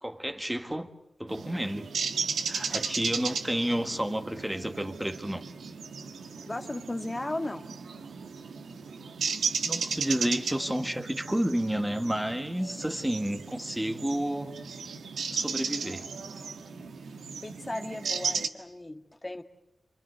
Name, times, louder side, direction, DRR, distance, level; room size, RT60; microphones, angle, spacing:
voice 1, 0.0-0.9 1.2-1.9 2.5-5.4 9.6-14.5 15.3-16.1, right 1 dB, 10° right, 6 dB, 1.8 m, -30 dB
sound 1, 1.3-18.5, right 5 dB, 90° right, 1.5 m, -35 dB
voice 2, 6.5-7.6 17.4-19.4, left 1 dB, 25° left, 6 dB, 1.8 m, -36 dB
28.0 x 24.5 x 8.1 m, 0.83 s
cardioid pair, 70°, 0 cm